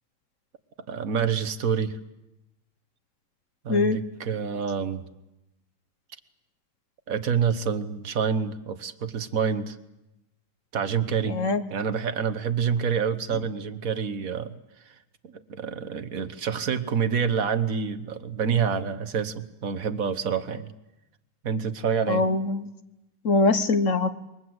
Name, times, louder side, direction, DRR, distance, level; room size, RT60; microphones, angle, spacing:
voice 1, 0.9-2.0 3.6-5.0 7.1-9.8 10.7-11.4 11.7-14.6 15.2-20.7 21.4-22.2, right 7 dB, 45° right, 11 dB, 1.4 m, -27 dB
voice 2, 3.7-4.0 11.2-11.6 22.1-22.7 23.2-24.1, left 3 dB, 45° left, 11 dB, 1.1 m, -22 dB
27.5 x 23.5 x 8.0 m, 0.95 s
omnidirectional pair, 2.4 m